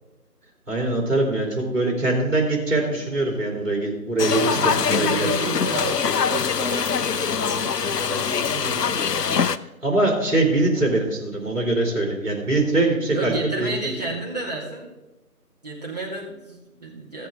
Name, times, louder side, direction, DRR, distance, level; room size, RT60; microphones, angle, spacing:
voice 1, 0.7-5.3 9.8-13.7, right 2 dB, 50° right, 0 dB, 3.3 m, -23 dB
sound 1, 4.2-9.6, left 6 dB, 85° left, 0.6 m, -23 dB
voice 2, 4.5-9.3 13.1-14.9 15.6-17.3, right 2 dB, 25° right, -5 dB, 1.9 m, -32 dB
15.5 x 7.4 x 3.6 m, 1.0 s
figure-of-eight pair, 165°, 47 cm